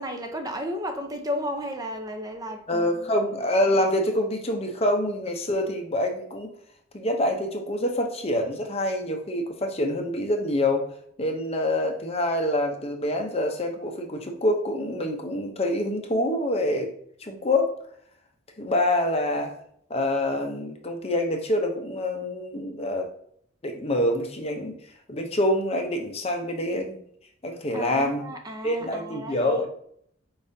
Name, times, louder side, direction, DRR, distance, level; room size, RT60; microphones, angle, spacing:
voice 1, 0.0-2.9 27.7-29.6, equal, 20° right, 5 dB, 0.5 m, -33 dB
voice 2, 2.7-6.5 6.9-10.9 11.2-16.9 17.2-17.7 18.6-19.5 19.9-23.1 23.6-24.7 25.1-27.0 27.4-28.2 28.6-29.7, left 1 dB, 30° left, 3 dB, 0.6 m, -26 dB
4.8 x 3.6 x 2.7 m, 0.65 s
head